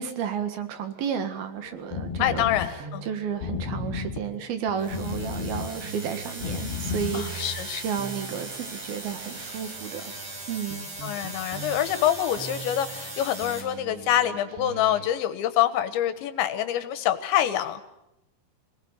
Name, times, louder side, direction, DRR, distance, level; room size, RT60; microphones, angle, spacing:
voice 1, 0.0-10.1 10.5-10.8, right 7 dB, 65° right, 9 dB, 3.4 m, -32 dB
sound 1, 1.6-7.5, left 6 dB, 65° left, 3.9 m, -34 dB
voice 2, 2.2-3.0 7.1-7.8 11.0-17.8, left 11 dB, 85° left, 11 dB, 3.7 m, -26 dB
sound 2, 2.3-15.1, right 6 dB, 80° right, 3.6 m, -43 dB
sound 3, 4.8-13.6, right 2 dB, 45° right, 8.8 m, -39 dB
26.5 x 19.0 x 9.5 m, 0.87 s
omnidirectional pair, 5.1 m